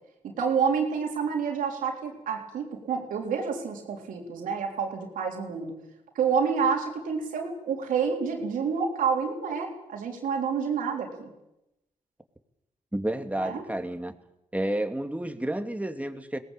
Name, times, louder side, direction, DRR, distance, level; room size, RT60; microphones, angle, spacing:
voice 1, 0.2-5.8 6.2-11.3 13.4-13.6, right 6 dB, 90° right, 2 dB, 3.9 m, -28 dB
voice 2, 12.9-14.2 14.5-16.4, right 1 dB, 10° right, 7 dB, 2.6 m, -30 dB
22.0 x 18.5 x 8.5 m, 0.92 s
supercardioid pair, 50°, 13 cm